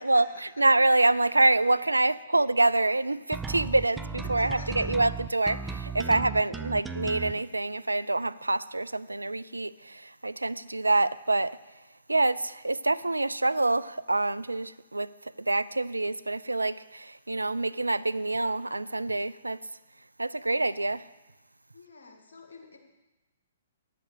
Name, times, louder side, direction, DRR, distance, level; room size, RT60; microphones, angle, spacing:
voice 1, 0.0-0.4 3.8-4.9 6.0-6.7 21.7-22.8, left 3 dB, 65° left, 1.9 m, -48 dB
voice 2, 0.6-11.6 12.1-15.1 15.4-19.6 20.2-21.0, right 2 dB, 85° right, 0.3 m, -26 dB
sound 1, 3.3-7.3, right 5 dB, 5° right, 0.5 m, -35 dB
9.9 x 7.6 x 6.5 m
figure-of-eight pair, 120°, 0 cm